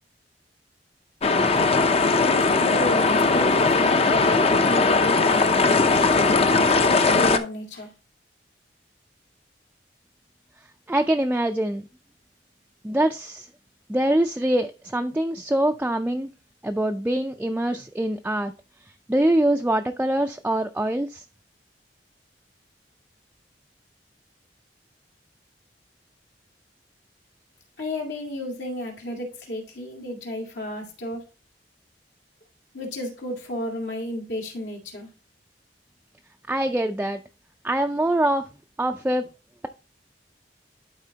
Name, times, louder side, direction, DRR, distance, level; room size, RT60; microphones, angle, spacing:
sound 1, 1.2-7.4, left 3 dB, 35° left, 0.6 m, -19 dB
voice 1, 2.0-7.9 27.8-31.3 32.7-35.1, left 1 dB, 80° left, 1 dB, 2.2 m, -33 dB
voice 2, 10.9-11.8 12.8-13.5 13.9-16.3 16.6-18.5 19.1-21.2 36.5-37.2 37.6-38.4 38.8-39.3, right 1 dB, 10° right, 4 dB, 0.4 m, -24 dB
11.5 x 4.2 x 2.8 m, 0.31 s
head